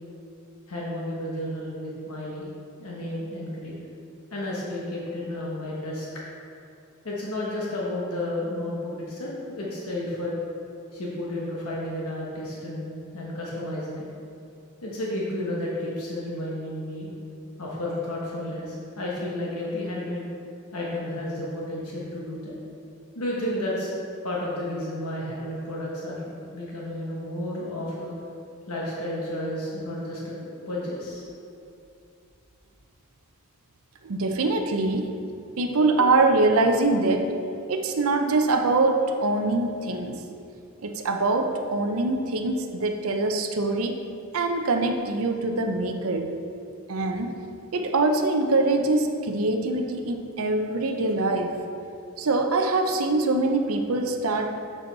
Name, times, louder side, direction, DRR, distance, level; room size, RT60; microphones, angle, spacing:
voice 1, 0.7-2.5 2.8-3.8 4.3-6.1 7.0-10.3 10.9-14.1 14.8-17.1 17.6-20.3 20.7-22.6 23.1-23.9 24.2-28.1 28.7-31.2, left 1 dB, 85° left, -5 dB, 1.1 m, -32 dB
voice 2, 34.0-35.1 35.6-37.3 37.7-40.2 40.8-44.0 44.3-46.3 46.9-47.3 47.7-51.6 52.2-54.6, right 2 dB, 70° right, 4 dB, 0.6 m, -24 dB
6.8 x 6.2 x 4.0 m, 2.6 s
head